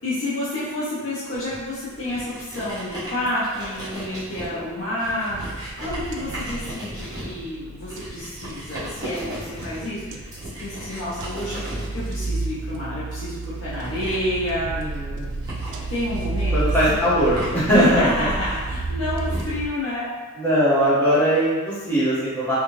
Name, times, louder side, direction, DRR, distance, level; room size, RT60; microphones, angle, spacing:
voice 1, 0.0-5.5 5.8-11.7 11.9-15.0 15.9-17.1 17.7-20.1, left 1 dB, 85° left, -10 dB, 0.8 m, -29 dB
sound 1, 1.3-19.4, right 1 dB, 20° right, 1.1 m, -37 dB
sound 2, 5.2-19.7, right 2 dB, 60° right, 0.3 m, -31 dB
voice 2, 14.7-15.3 16.5-18.1 20.4-22.6, equal, 10° left, -13 dB, 1.4 m, -20 dB
3.6 x 2.4 x 3.1 m, 1.3 s
head